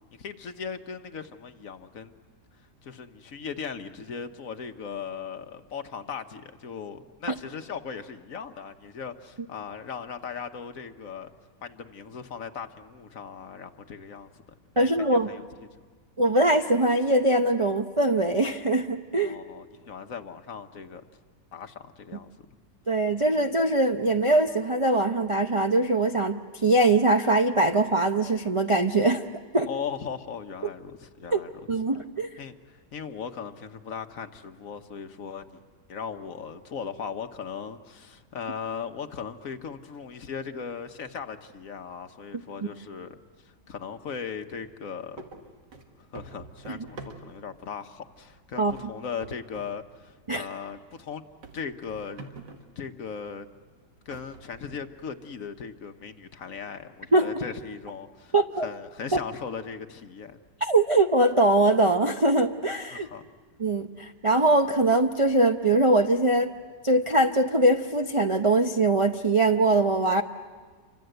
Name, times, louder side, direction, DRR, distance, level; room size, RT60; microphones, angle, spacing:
voice 1, 0.1-2.1 2.8-11.3 11.6-14.3 14.7-15.4 15.7-15.8 19.2-21.0 21.5-22.3 29.6-31.5 32.4-35.6 35.9-45.2 46.0-51.2 51.5-52.3 52.8-53.5 54.1-58.3 58.6-60.4 62.9-63.2, left 6 dB, 55° left, 7 dB, 1.3 m, -38 dB
voice 2, 14.8-15.3 16.2-19.3 22.9-29.2 29.5-29.7 31.3-31.4 31.7-32.3 46.7-46.8 48.6-48.7 50.3-50.5 57.1-57.3 58.3-58.7 59.1-59.2 60.6-63.1 63.6-66.5 66.8-70.2, right 2 dB, 40° right, 3 dB, 0.4 m, -22 dB
sound 1, 44.6-44.8 45.2-47.6 48.1-48.4 48.7-49.8 50.1-50.2 50.7-50.8 51.4-52.8 53.5-53.6 54.1-55.1, right 3 dB, 85° right, 2.5 m, -46 dB
28.5 x 25.5 x 7.9 m, 1.5 s
omnidirectional pair, 1.8 m